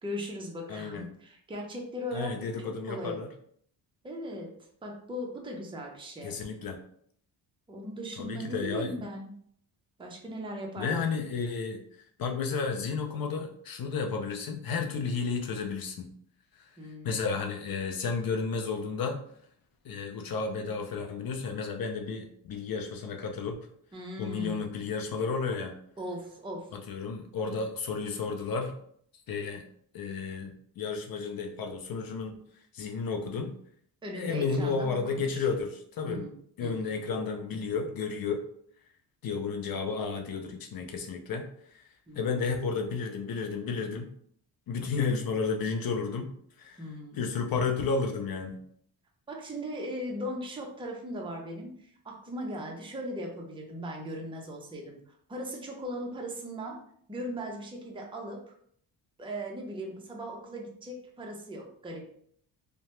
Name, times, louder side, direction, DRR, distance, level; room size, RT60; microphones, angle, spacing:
voice 1, 0.0-3.3 4.0-4.5 4.8-6.3 7.7-9.3 10.0-11.0 16.8-17.2 23.9-24.7 26.0-26.7 34.0-35.5 36.0-37.0 42.1-42.5 46.8-47.2 49.3-55.0 55.3-56.8 57.1-58.4 59.2-62.1, equal, 10° right, 0 dB, 0.6 m, -38 dB
voice 2, 0.7-1.1 2.1-3.3 6.2-6.8 8.2-9.0 10.8-11.8 12.2-16.1 16.6-16.7 17.0-19.2 19.8-23.6 24.2-25.8 26.7-28.8 29.3-29.6 29.9-32.4 32.7-33.5 34.1-36.3 36.6-38.4 39.2-41.8 42.1-44.1 44.7-46.3 46.6-46.9 47.1-48.6, left 5 dB, 50° left, 4 dB, 0.5 m, -32 dB
2.7 x 2.1 x 3.1 m, 0.64 s
cardioid pair, 85°, 46 cm